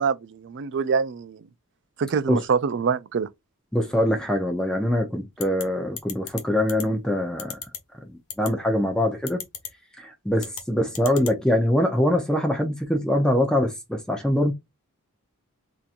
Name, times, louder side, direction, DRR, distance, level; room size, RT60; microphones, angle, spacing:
voice 1, 0.0-1.4 2.0-3.3, right 5 dB, 55° right, 0.4 m, -25 dB
voice 2, 3.7-7.6 8.1-9.4 10.0-14.5, left 1 dB, 5° left, 0.7 m, -23 dB
sound 1, 5.4-5.6 6.0-6.4 6.7-6.8 7.4-7.8 8.3-8.5 9.3-9.7 10.4-10.6 10.9-11.3, left 9 dB, 70° left, 1.0 m, -33 dB
3.7 x 2.8 x 2.5 m
head